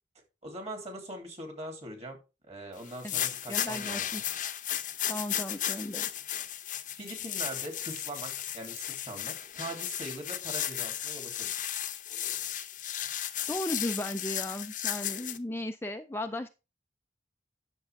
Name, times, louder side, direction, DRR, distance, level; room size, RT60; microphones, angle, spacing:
voice 1, 0.4-2.2 2.5-4.2 6.9-11.8, right 1 dB, 35° right, 3.0 m, -42 dB
sound 1, 2.9-15.4, left 11 dB, 45° left, 0.8 m, -35 dB
voice 2, 3.0-4.2 5.1-6.1 13.5-16.5, left 1 dB, 15° left, 0.4 m, -36 dB
10.5 x 6.8 x 3.5 m
head